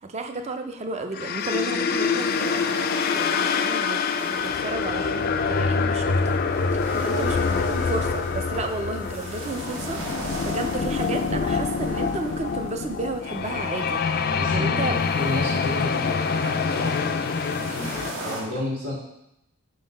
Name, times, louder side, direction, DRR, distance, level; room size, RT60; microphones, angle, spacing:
voice 1, 0.0-2.6 3.1-6.4 7.0-10.0 10.4-14.0 14.5-15.0, right 3 dB, 30° right, 6 dB, 0.4 m, -32 dB
sound 1, 1.1-18.1, left 5 dB, 45° left, 0.3 m, -25 dB
sound 2, 1.4-18.4, right 1 dB, 65° right, 1.2 m, -41 dB
voice 2, 6.9-7.4 14.2-18.9, left 1 dB, 85° right, -4 dB, 2.1 m, -33 dB
5.2 x 3.9 x 5.2 m, 0.83 s
head